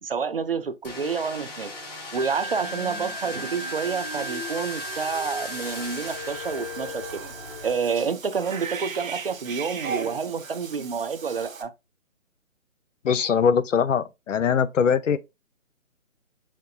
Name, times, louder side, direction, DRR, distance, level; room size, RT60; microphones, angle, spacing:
voice 1, 0.0-1.7 2.1-7.2 7.6-11.7, right 5 dB, 45° right, 0.5 m, -29 dB
sound 1, 0.8-7.7, left 3 dB, 30° left, 1.9 m, -37 dB
Wind instrument woodwind instrument, 2.1-7.9, right 3 dB, 25° right, 1.5 m, -38 dB
Cat / Bathtub (filling or washing), 5.6-11.6, right 6 dB, 75° right, 1.1 m, -37 dB
voice 2, 13.0-15.2, left 7 dB, 65° left, 0.6 m, -22 dB
5.9 x 3.1 x 2.7 m
hypercardioid pair, 155°, 40 cm